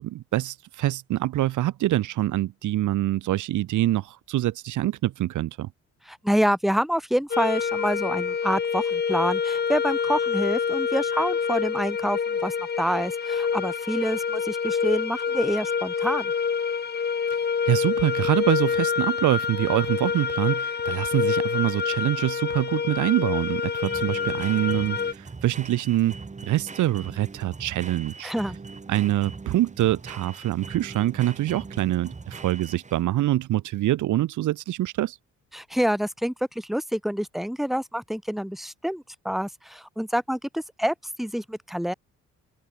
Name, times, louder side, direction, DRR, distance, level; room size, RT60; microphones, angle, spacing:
voice 1, 0.0-5.7 17.7-26.1 26.4-28.3 28.9-35.2, right 14 dB, 75° right, 1.2 m, -25 dB
voice 2, 6.1-16.3 28.2-28.6 35.5-41.9, equal, ahead, 1.7 m, -27 dB
sound 1, 7.3-25.1, left 6 dB, 35° left, 1.1 m, -27 dB
sound 2, 21.6-33.2, right 4 dB, 25° right, 2.1 m, -41 dB
open air
cardioid pair, 90°, 30 cm